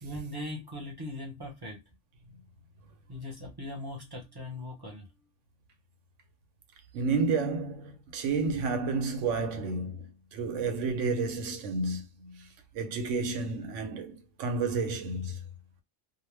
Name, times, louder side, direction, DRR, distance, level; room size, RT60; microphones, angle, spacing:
voice 1, 0.0-1.8 3.1-5.1, left 1 dB, 20° right, 0.8 m, -39 dB
voice 2, 6.9-12.5 12.7-15.4, right 4 dB, 85° right, 1.0 m, -31 dB
2.3 x 2.1 x 3.2 m
omnidirectional pair, 1.2 m